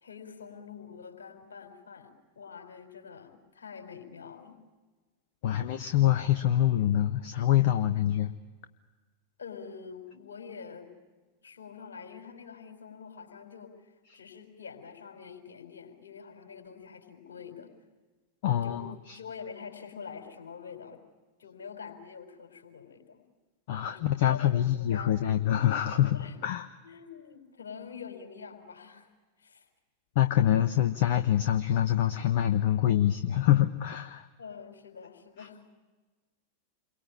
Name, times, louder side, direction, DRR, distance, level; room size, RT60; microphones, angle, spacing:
voice 1, 0.0-4.6 9.4-10.9 11.4-17.7 18.6-21.0 21.4-23.3 23.8-25.2 26.1-26.4 26.8-29.1 29.4-29.6 34.4-35.6, left 6 dB, 70° left, 5 dB, 4.7 m, -46 dB
voice 2, 5.4-8.3 14.1-14.2 18.4-19.2 23.7-26.7 30.1-34.3 35.4-35.5, left 11 dB, 50° left, 9 dB, 1.1 m, -25 dB
28.5 x 23.0 x 8.9 m, 1.3 s
figure-of-eight pair, 90°, 0 cm